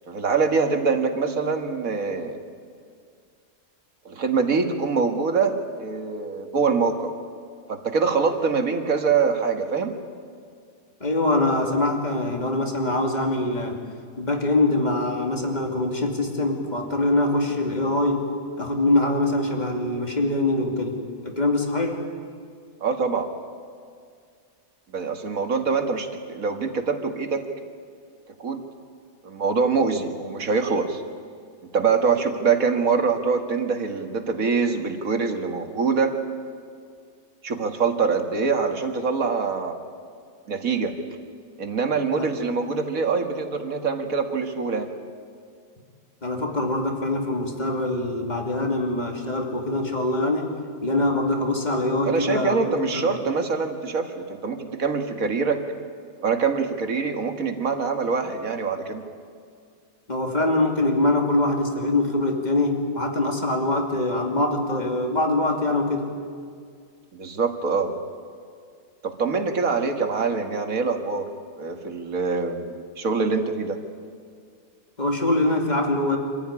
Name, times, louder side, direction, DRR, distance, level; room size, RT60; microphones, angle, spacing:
voice 1, 0.1-2.4 4.1-7.1 7.7-10.0 22.8-23.3 24.9-27.5 28.4-28.6 29.2-31.0 31.7-36.1 37.4-39.8 40.5-41.0 41.6-44.9 52.0-55.6 56.2-59.0 67.1-67.9 69.0-71.3 71.6-73.8, right 5 dB, 70° right, 5 dB, 2.2 m, -24 dB
voice 2, 11.0-13.8 14.2-18.2 18.6-21.0 21.2-22.0 42.2-42.3 46.2-50.5 50.8-52.6 52.9-53.1 60.1-66.1 75.0-76.2, left 2 dB, 30° left, 3 dB, 2.7 m, -23 dB
26.0 x 15.0 x 9.9 m, 2.2 s
omnidirectional pair, 1.5 m